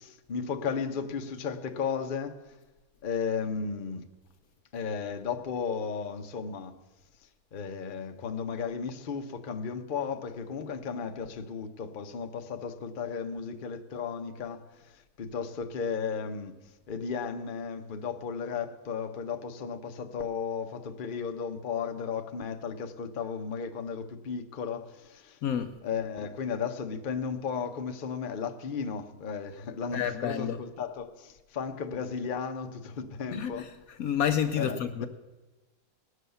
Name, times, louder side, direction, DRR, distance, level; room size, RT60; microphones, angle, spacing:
voice 1, 0.0-2.5 3.0-4.0 4.7-6.7 7.5-16.5 16.9-25.4 25.8-33.7 34.6-35.1, left 6 dB, 40° left, 0.8 m, -34 dB
voice 2, 25.4-25.7 29.9-30.6 33.3-33.7 34.0-35.1, left 8 dB, 65° left, 1.0 m, -29 dB
18.5 x 6.4 x 6.8 m
omnidirectional pair, 1.8 m